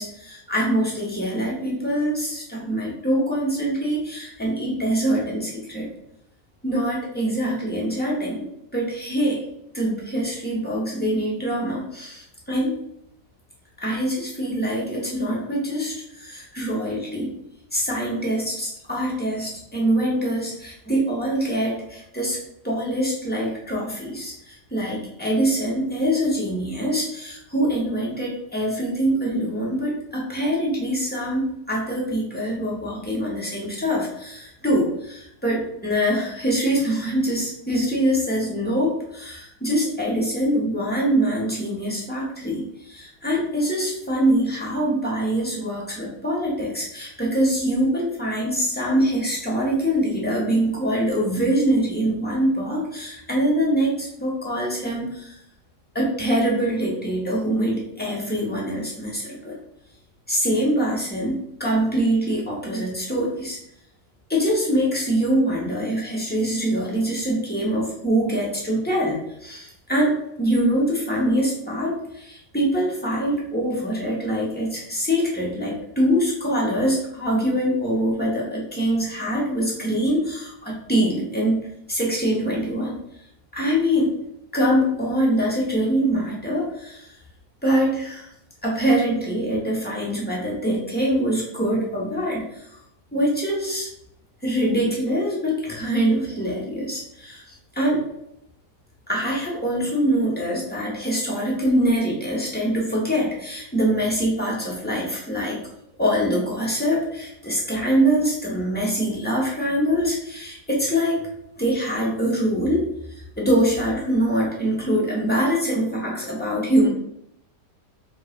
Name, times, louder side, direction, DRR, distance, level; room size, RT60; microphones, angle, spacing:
voice 1, 0.0-5.9 6.6-8.5 8.7-9.4 9.7-12.7 13.8-17.4 17.7-22.4 22.6-55.3 55.9-59.6 60.3-63.6 64.3-83.0 83.5-84.1 84.5-87.1 87.6-88.3 88.6-92.5 93.1-93.9 94.4-97.4 97.7-98.0 99.1-105.6 106.0-111.2 111.6-112.8 113.4-116.9, right 1 dB, 5° left, -4 dB, 0.9 m, -24 dB
3.3 x 3.2 x 4.5 m, 0.77 s
omnidirectional pair, 1.9 m